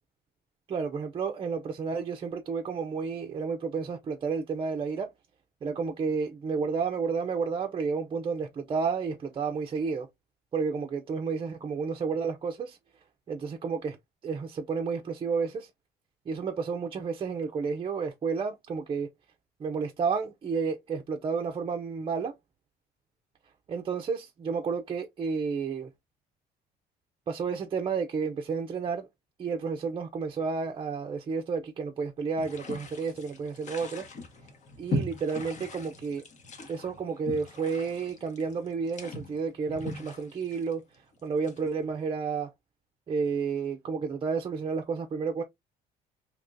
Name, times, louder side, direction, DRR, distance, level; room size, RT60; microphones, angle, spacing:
voice 1, 0.7-5.1 5.6-10.1 10.5-12.8 13.3-14.0 14.2-15.7 16.3-19.1 19.6-22.3 23.7-25.9 27.3-29.1 29.4-34.1 34.8-36.2 36.7-40.8 41.2-42.5 43.1-45.4, right 5 dB, 30° right, 0.5 m, -31 dB
sound 1, 32.4-41.9, left 1 dB, 45° left, 1.0 m, -39 dB
3.6 x 2.9 x 2.5 m
cardioid pair, 110°, 17 cm